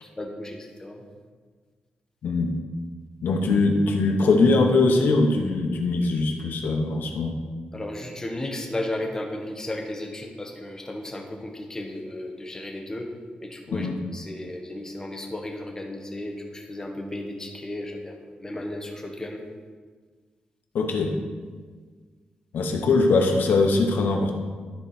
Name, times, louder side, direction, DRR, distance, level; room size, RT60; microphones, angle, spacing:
voice 1, 0.0-1.0 7.7-13.1 13.4-13.9 14.1-19.4, left 1 dB, 20° left, 2 dB, 1.2 m, -34 dB
voice 2, 2.2-2.5 3.2-7.4 13.7-14.0 20.7-21.2 22.5-24.3, left 3 dB, 80° left, 3 dB, 1.1 m, -21 dB
13.0 x 4.5 x 4.3 m, 1.5 s
wide cardioid pair, 130°, 3 cm